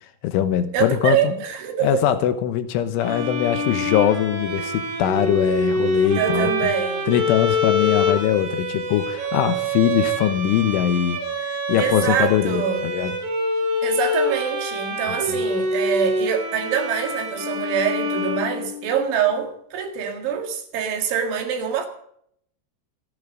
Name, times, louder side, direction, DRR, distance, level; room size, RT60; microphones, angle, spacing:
voice 1, 0.2-1.4 1.8-6.5 7.1-13.1 15.3-15.4, left 11 dB, 80° left, 3.5 m, -22 dB
voice 2, 0.7-2.2 6.2-7.1 11.8-12.9 13.8-21.9, right 7 dB, 70° right, 4.4 m, -25 dB
Bowed string instrument, 3.0-19.1, left 1 dB, 85° right, 7.3 m, -25 dB
27.0 x 10.5 x 3.9 m
omnidirectional pair, 5.7 m